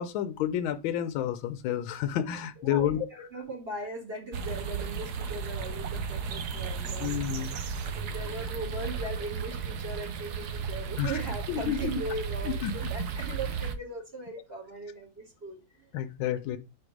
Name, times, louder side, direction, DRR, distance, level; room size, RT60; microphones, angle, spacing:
voice 1, 0.0-3.1 7.0-7.5 11.0-11.2 11.5-11.9 12.4-12.7 15.9-16.6, left 10 dB, 80° left, 1.4 m, -30 dB
voice 2, 2.6-7.2 7.9-15.9, right 2 dB, 30° right, 1.7 m, -39 dB
sound 1, 4.3-13.8, right 6 dB, 70° right, 1.0 m, -34 dB
4.5 x 4.5 x 4.9 m
omnidirectional pair, 2.2 m